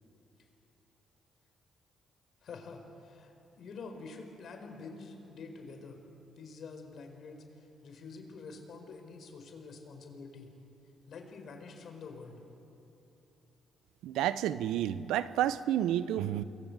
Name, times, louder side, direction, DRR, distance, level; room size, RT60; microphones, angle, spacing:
voice 1, 2.4-6.0 6.4-10.5 11.1-12.4, left 4 dB, 60° left, 5 dB, 4.9 m, -47 dB
voice 2, 14.0-16.4, right 11 dB, 90° right, 14 dB, 0.8 m, -30 dB
28.5 x 22.0 x 8.2 m, 3.0 s
cardioid pair, 90°, 0 cm